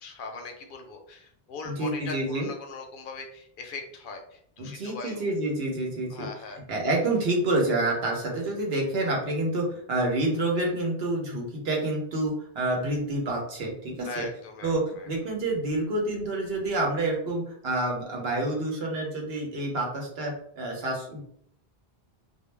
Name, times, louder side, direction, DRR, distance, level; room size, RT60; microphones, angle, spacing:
voice 1, 0.0-5.3 6.1-6.6 10.2-10.3 14.0-15.1, left 3 dB, 60° left, 4 dB, 0.6 m, -40 dB
voice 2, 1.6-2.5 4.6-6.3 6.7-14.3 14.6-21.2, right 2 dB, 70° right, -1 dB, 1.0 m, -28 dB
2.3 x 2.1 x 3.1 m, 0.66 s
omnidirectional pair, 1.1 m